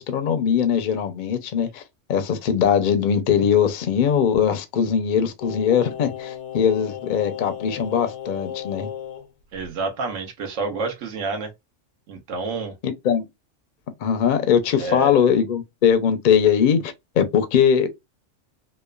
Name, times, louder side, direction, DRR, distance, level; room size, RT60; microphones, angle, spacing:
voice 1, 0.0-1.8 2.1-8.9 12.8-13.2 14.0-17.9, left 8 dB, 60° left, 0.5 m, -21 dB
Singing, 5.4-9.3 9.6-9.7, left 10 dB, 90° left, 1.0 m, -35 dB
voice 2, 9.5-11.5 12.1-12.7 14.8-15.1, right 4 dB, 80° right, 1.1 m, -29 dB
2.9 x 2.1 x 2.3 m
omnidirectional pair, 1.3 m